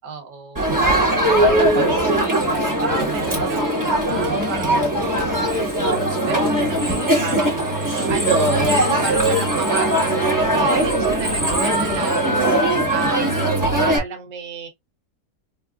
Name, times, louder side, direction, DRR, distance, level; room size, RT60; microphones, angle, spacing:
voice 1, 0.0-12.4 12.9-13.5 13.8-14.7, right 4 dB, 85° right, 1.5 m, -32 dB
Crowd, 0.5-14.0, right 1 dB, 15° right, 0.9 m, -20 dB
5.1 x 2.3 x 2.3 m
omnidirectional pair, 1.8 m